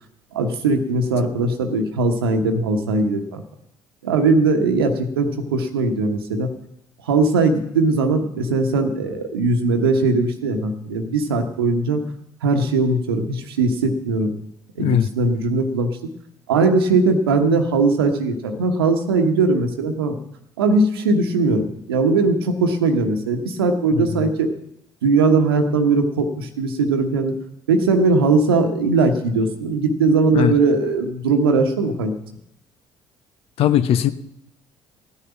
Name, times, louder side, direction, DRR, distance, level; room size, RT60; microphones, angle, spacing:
voice 1, 0.3-3.4 4.0-6.5 7.0-12.0 12.4-14.3 14.8-16.0 16.5-20.2 20.6-24.5 25.0-27.3 27.7-32.1, right 3 dB, 75° right, 5 dB, 1.1 m, -19 dB
voice 2, 14.8-15.1 23.9-24.3 30.3-30.6 33.6-34.1, left 10 dB, 50° left, 13 dB, 0.7 m, -19 dB
15.5 x 9.7 x 5.9 m, 0.78 s
figure-of-eight pair, 50°, 13 cm